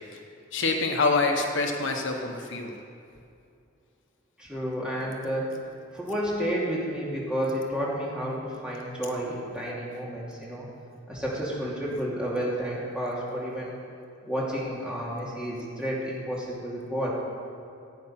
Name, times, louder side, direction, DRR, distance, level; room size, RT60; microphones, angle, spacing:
voice 1, 0.5-2.7, left 3 dB, 65° left, 3 dB, 1.1 m, -26 dB
voice 2, 4.4-5.5 5.9-10.7 11.1-13.7 14.2-17.1, equal, 5° right, -6 dB, 2.6 m, -31 dB
15.5 x 8.9 x 5.8 m, 2.5 s
head